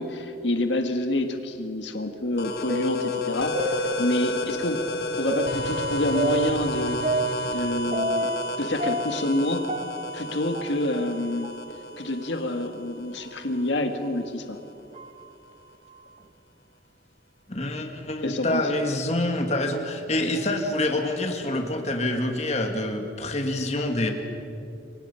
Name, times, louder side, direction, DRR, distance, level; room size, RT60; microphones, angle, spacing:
voice 1, 0.0-3.6 4.0-4.8 5.2-7.0 7.5-8.3 8.6-9.6 10.1-11.5 12.0-14.6 18.2-18.6, left 1 dB, 90° left, 6 dB, 1.8 m, -27 dB
sound 1, 2.3-4.5 5.3-8.5 8.8-11.2 11.4-11.5 12.3-12.4 13.2-13.4 14.0-14.1 14.9-15.2, equal, 35° right, 1.1 m, -30 dB
sound 2, 2.4-13.8, left 1 dB, 60° left, 1.6 m, -32 dB
voice 2, 17.5-24.1, left 1 dB, 40° left, 4 dB, 2.2 m, -26 dB
29.0 x 24.0 x 5.7 m, 2.7 s
head